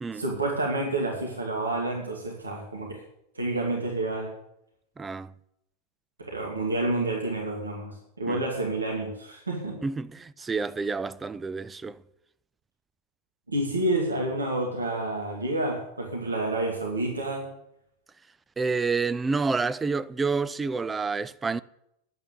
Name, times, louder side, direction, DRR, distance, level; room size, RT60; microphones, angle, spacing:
voice 1, 0.1-3.0 3.3-4.3 6.2-9.8 13.5-17.5, right 2 dB, 80° right, 2.6 m, -29 dB
voice 2, 5.0-5.3 8.3-8.4 9.8-12.0 18.6-21.6, right 4 dB, 15° right, 0.5 m, -29 dB
10.5 x 8.8 x 8.6 m
figure-of-eight pair, 90°, 0 cm